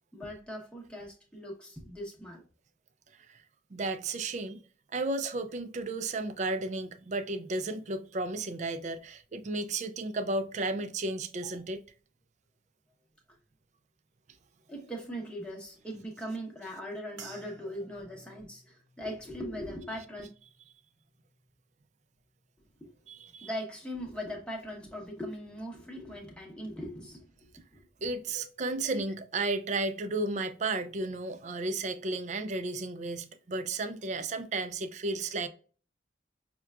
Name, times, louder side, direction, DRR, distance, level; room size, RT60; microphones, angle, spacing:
voice 1, 0.1-2.4 11.4-11.5 14.7-20.3 22.8-22.9 23.2-27.2 27.7-27.8 28.3-28.4 28.8-28.9, equal, 5° left, 0.9 m, -40 dB
voice 2, 3.7-4.6 4.9-11.8 23.1-23.5 28.0-35.5, right 2 dB, 40° right, 0.4 m, -33 dB
sound 1, 17.2-21.7 22.0-22.7 23.3-23.5, right 5 dB, 80° right, 0.7 m, -56 dB
5.8 x 2.2 x 2.3 m
head